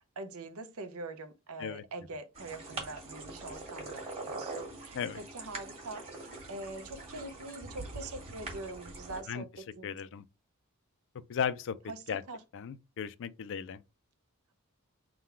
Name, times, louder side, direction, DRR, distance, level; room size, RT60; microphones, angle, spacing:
voice 1, 0.2-9.9 11.9-12.4, right 2 dB, 80° right, 0.7 m, -44 dB
sound 1, 2.3-9.2, right 3 dB, 30° right, 1.6 m, -43 dB
voice 2, 9.8-10.2 11.3-11.8 12.1-12.2 12.5-13.8, left 7 dB, 60° left, 0.4 m, -35 dB
3.8 x 2.3 x 4.4 m
head